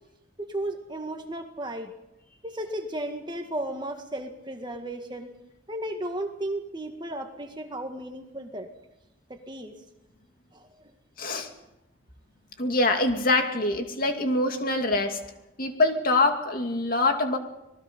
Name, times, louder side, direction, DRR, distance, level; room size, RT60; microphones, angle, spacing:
voice 1, 0.4-1.9 2.4-5.3 5.7-8.7 9.3-9.8 10.5-10.9, right 1 dB, 20° right, 5 dB, 1.8 m, -34 dB
voice 2, 11.2-11.5 12.6-15.2 15.6-17.4, left 2 dB, 45° left, 5 dB, 2.5 m, -24 dB
27.0 x 19.5 x 5.5 m, 0.89 s
head